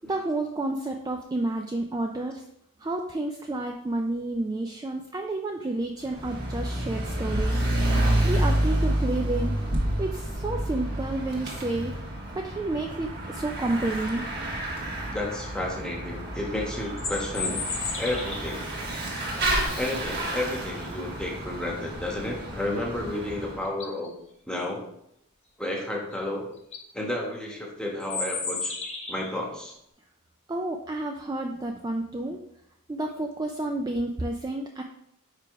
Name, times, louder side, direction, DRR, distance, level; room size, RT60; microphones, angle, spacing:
voice 1, 0.1-2.4 2.8-7.6 8.2-9.6 10.0-11.9 12.3-14.2 30.5-32.4 32.9-34.8, right 2 dB, 15° right, 2 dB, 0.3 m, -30 dB
Bicycle / Mechanisms, 6.0-23.6, right 1 dB, 45° right, 1.3 m, -29 dB
voice 2, 15.1-17.6 17.9-18.7 19.7-24.1 24.5-24.8 25.6-26.4 26.9-28.8 29.1-29.7, left 1 dB, 5° left, -2 dB, 1.1 m, -31 dB
sound 1, 16.8-18.6 23.1-23.2 23.6-24.1 26.1-26.2 26.6-26.8 28.0-29.4, left 4 dB, 30° left, 1.0 m, -33 dB
4.9 x 4.8 x 4.6 m, 0.77 s
head